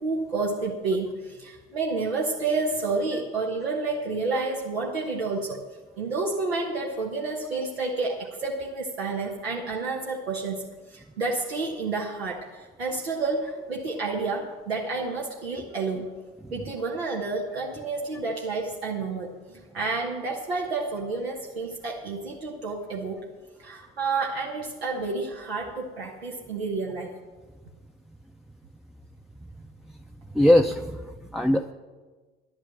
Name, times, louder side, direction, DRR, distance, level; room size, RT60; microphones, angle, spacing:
voice 1, 0.0-5.6 6.0-16.1 16.5-23.2 23.6-27.1, right 3 dB, 85° right, -2 dB, 1.2 m, -30 dB
voice 2, 29.6-29.9 30.3-31.7, left 1 dB, ahead, 3 dB, 0.6 m, -22 dB
11.0 x 8.9 x 7.6 m, 1.3 s
figure-of-eight pair, 55°, 30 cm